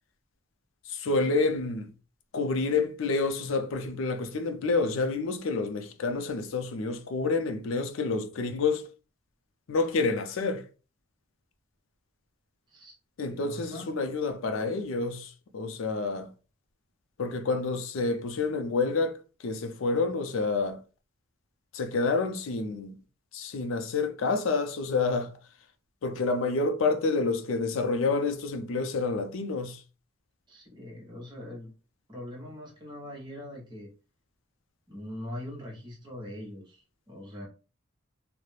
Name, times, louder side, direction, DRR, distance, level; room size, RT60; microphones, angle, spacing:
voice 1, 0.9-1.9 2.3-8.9 9.7-10.7 13.2-16.3 17.2-20.8 21.7-23.0 23.3-25.3 26.0-29.8, left 3 dB, 85° left, 0.4 m, -28 dB
voice 2, 13.3-13.9 30.5-31.7 32.1-33.9 34.9-37.5, left 1 dB, 20° right, 0.8 m, -42 dB
2.3 x 2.0 x 3.0 m
head